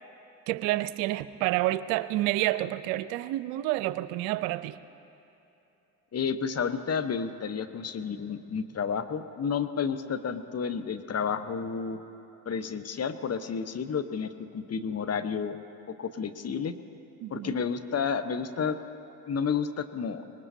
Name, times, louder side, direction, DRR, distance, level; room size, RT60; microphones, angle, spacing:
voice 1, 0.5-4.8 17.2-17.6, right 16 dB, 75° right, 14 dB, 0.7 m, -29 dB
voice 2, 6.1-12.0 12.5-15.6 15.9-16.7 17.3-18.8 19.3-20.2, left 6 dB, 35° left, 9 dB, 1.1 m, -31 dB
24.5 x 20.5 x 2.8 m, 2.9 s
hypercardioid pair, 60°, 44 cm